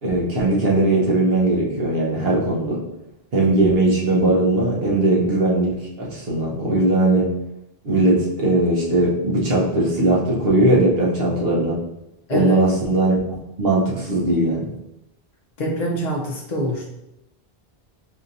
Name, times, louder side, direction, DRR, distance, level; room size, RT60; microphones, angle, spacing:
voice 1, 0.0-2.8 3.3-7.3 7.8-11.8 12.3-14.7, right 2 dB, 70° right, -4 dB, 1.2 m, -19 dB
voice 2, 15.6-16.9, equal, 50° left, -2 dB, 0.6 m, -25 dB
5.1 x 2.8 x 2.6 m, 0.89 s
omnidirectional pair, 1.0 m